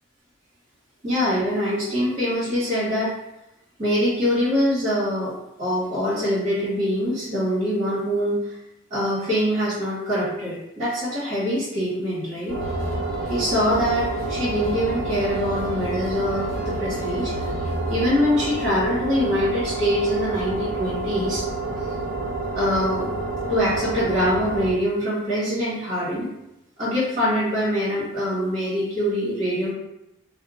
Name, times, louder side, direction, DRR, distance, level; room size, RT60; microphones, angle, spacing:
voice 1, 1.0-3.1 3.8-8.5 8.9-12.6 13.3-17.3 17.9-21.4 21.7-21.8 22.5-23.1 23.5-26.3 26.8-29.7, equal, 40° right, -10 dB, 1.4 m, -24 dB
sound 1, 12.5-24.7, right 3 dB, 90° right, 0.7 m, -29 dB
sound 2, 12.6-18.0, equal, 90° left, 0.6 m, -34 dB
2.8 x 2.2 x 3.6 m, 0.88 s
head